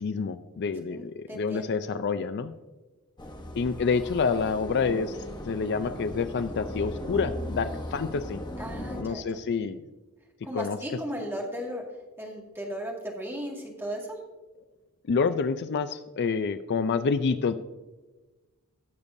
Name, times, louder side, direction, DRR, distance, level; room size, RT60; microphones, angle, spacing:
voice 1, 0.0-2.5 3.6-5.2 5.5-8.4 9.0-9.8 10.5-10.8 15.1-17.5, left 5 dB, 50° left, 11 dB, 0.4 m, -28 dB
voice 2, 0.9-1.7 8.6-9.4 10.4-11.8 12.2-14.2, equal, 10° right, -1 dB, 2.1 m, -36 dB
sound 1, 3.2-9.0, left 1 dB, 20° left, 1.1 m, -37 dB
17.5 x 6.7 x 2.7 m, 1.2 s
head